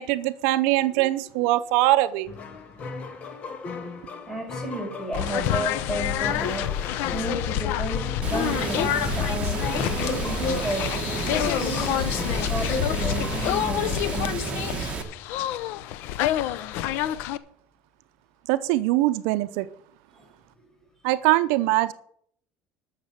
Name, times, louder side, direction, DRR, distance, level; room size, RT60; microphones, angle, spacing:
voice 1, 0.0-2.3 18.5-19.7 21.0-21.9, right 16 dB, 80° right, 0.6 m, -22 dB
sound 1, 2.2-13.7, left 4 dB, 40° left, 1.7 m, -38 dB
voice 2, 4.3-14.8 20.1-20.3, right 1 dB, 15° left, 6.6 m, -33 dB
sound 2, 5.1-17.4, left 12 dB, 70° left, 0.7 m, -27 dB
Water, 8.2-15.0, right 5 dB, 30° right, 1.7 m, -31 dB
12.5 x 6.7 x 7.3 m
cardioid pair, 135°, 4 cm